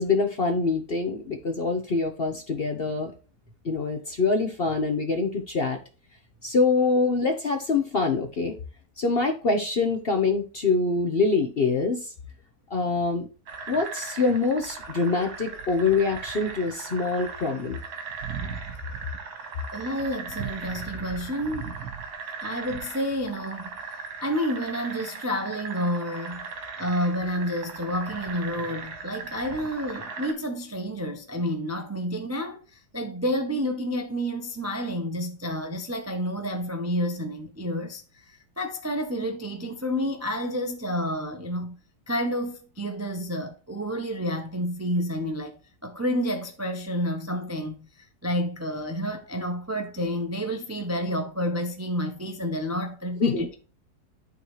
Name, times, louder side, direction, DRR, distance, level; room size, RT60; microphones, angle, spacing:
voice 1, 0.0-3.1 3.6-5.8 6.4-8.6 9.0-12.1 12.7-13.3 13.7-17.8 53.2-53.5, left 4 dB, 45° left, 0.8 m, -25 dB
sound 1, 13.5-30.3, right 5 dB, 65° right, 1.9 m, -38 dB
voice 2, 19.7-21.7 22.4-26.4 26.8-32.6 32.9-41.7 42.1-53.5, equal, 15° right, 0.5 m, -30 dB
12.0 x 4.0 x 3.1 m
omnidirectional pair, 1.8 m